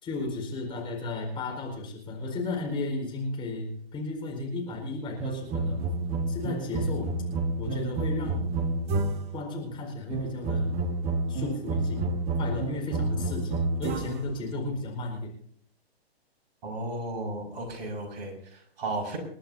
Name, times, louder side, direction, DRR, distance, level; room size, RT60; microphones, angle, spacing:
voice 1, 0.0-5.8 6.3-7.1 7.6-8.5 9.3-10.7 11.3-12.1 12.4-15.3, left 2 dB, 15° left, 0 dB, 4.6 m, -34 dB
sound 1, 5.2-9.4 10.1-14.4, right 2 dB, 20° right, 1.1 m, -29 dB
voice 2, 16.6-19.2, right 2 dB, 40° right, 1 dB, 5.8 m, -34 dB
29.5 x 11.5 x 2.8 m, 0.64 s
figure-of-eight pair, 130°, 32 cm